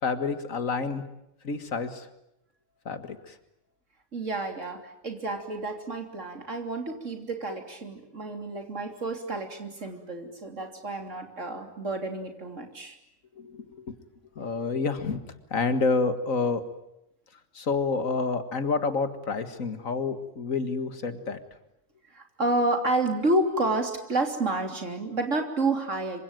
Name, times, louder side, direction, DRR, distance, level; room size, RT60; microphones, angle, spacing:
voice 1, 0.0-1.0 1.4-2.1 2.9-3.4 13.4-14.0 14.4-15.2 15.5-16.6 17.5-21.4, left 4 dB, 80° left, 10 dB, 2.2 m, -28 dB
voice 2, 4.1-13.0 22.1-26.2, right 2 dB, 65° right, 4 dB, 3.6 m, -30 dB
26.5 x 25.0 x 9.2 m, 0.84 s
omnidirectional pair, 1.4 m